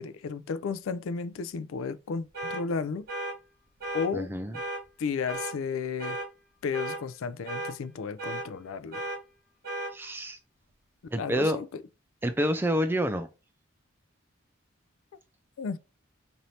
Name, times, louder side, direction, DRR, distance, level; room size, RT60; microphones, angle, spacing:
voice 1, 0.0-3.1 3.9-4.3 5.0-6.2 6.6-9.1 11.2-11.8 15.6-15.8, left 5 dB, 80° left, 0.4 m, -33 dB
sound 1, 2.3-2.6 3.1-3.3 3.8-4.1 4.5-4.8 5.3-5.5 6.0-6.3 6.7-7.0 7.5-7.7 8.2-8.5 8.9-9.2 9.6-9.9, right 1 dB, 45° right, 1.7 m, -34 dB
voice 2, 4.1-4.6 9.9-10.4 11.1-11.6 12.2-13.3, equal, 10° right, 0.3 m, -28 dB
3.1 x 2.7 x 4.1 m
head